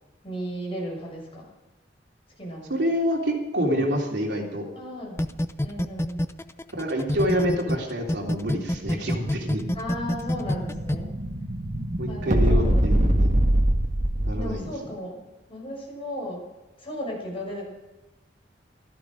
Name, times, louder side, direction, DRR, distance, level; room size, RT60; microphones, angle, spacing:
voice 1, 0.2-1.5 2.4-2.7 4.7-5.2 5.6-6.2 9.7-11.1 12.1-12.8 14.3-15.2 15.5-16.4 16.8-17.7, equal, 30° left, -2 dB, 6.7 m, -35 dB
voice 2, 2.7-4.7 6.7-9.6 12.0-13.3 14.2-14.7, equal, 65° right, -1 dB, 3.4 m, -27 dB
sound 1, 5.2-7.8 8.1-10.9, left 1 dB, 15° left, 0.6 m, -25 dB
Explosion, 8.6-14.7, right 1 dB, 45° right, 1.5 m, -24 dB
16.5 x 13.5 x 5.0 m, 1.1 s
head